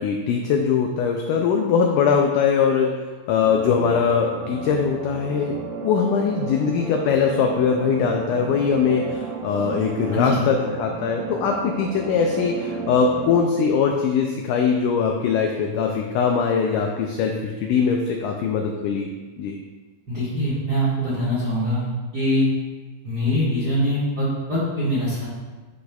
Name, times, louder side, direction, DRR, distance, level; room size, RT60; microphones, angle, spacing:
voice 1, 0.0-3.0 3.3-19.1 19.4-19.6, left 6 dB, 85° left, 2 dB, 1.8 m, -21 dB
sound 1, 3.4-13.4, right 4 dB, 90° right, 2.4 m, -34 dB
voice 2, 10.1-10.4 20.1-21.8 22.1-22.4 23.0-25.3, equal, 40° right, -10 dB, 1.6 m, -23 dB
10.5 x 4.8 x 2.3 m, 1.3 s
omnidirectional pair, 4.2 m